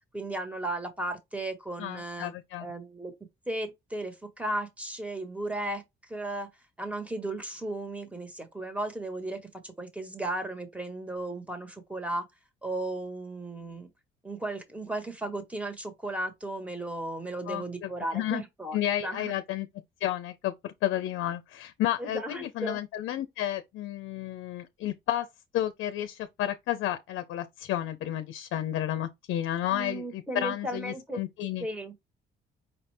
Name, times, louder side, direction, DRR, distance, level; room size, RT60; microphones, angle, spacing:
voice 1, 0.1-2.3 2.6-3.1 3.5-6.5 6.8-12.3 12.6-13.9 14.2-19.3 22.0-22.8 29.7-31.2 31.6-31.9, right 1 dB, 5° right, 1.4 m, -35 dB
voice 2, 1.8-2.7 17.5-18.4 18.7-19.7 20.0-25.3 25.5-31.7, left 12 dB, 80° left, 0.6 m, -32 dB
5.5 x 2.6 x 3.4 m
cardioid pair, 90°, 20 cm